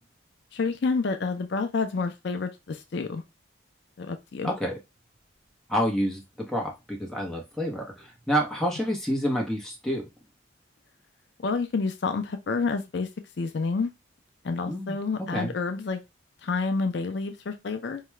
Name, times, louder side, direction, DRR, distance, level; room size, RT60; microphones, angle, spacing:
voice 1, 0.5-3.2 4.0-4.5 11.4-13.1 13.4-13.9 14.4-16.0 16.4-18.0, left 4 dB, 60° left, 7 dB, 0.4 m, -29 dB
voice 2, 4.4-4.8 5.7-10.0 14.7-15.5, equal, ahead, -1 dB, 0.8 m, -28 dB
4.6 x 2.2 x 3.1 m, 0.23 s
head